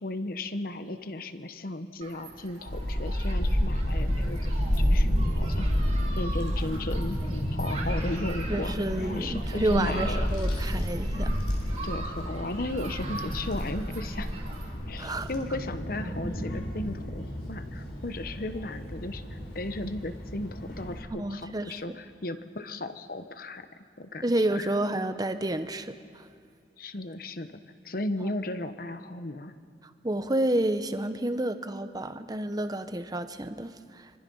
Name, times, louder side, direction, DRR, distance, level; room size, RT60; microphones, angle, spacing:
voice 1, 0.0-5.7 6.1-7.2 7.5-8.7 9.1-10.4 11.8-14.3 14.9-23.7 24.0-24.2 24.5-24.7 26.8-29.5, left 2 dB, 55° left, 9 dB, 1.0 m, -35 dB
Human group actions, 2.0-14.7, right 3 dB, 40° right, 3.3 m, -43 dB
Child speech kid speaking / Wind, 2.6-21.0, equal, 80° left, 5.1 m, -30 dB
voice 2, 8.5-11.4 11.7-11.8 15.0-15.3 21.2-21.7 24.2-26.3 28.2-28.3 30.0-34.1, right 1 dB, 20° right, 9 dB, 0.9 m, -30 dB
25.5 x 24.5 x 5.5 m, 2.2 s
head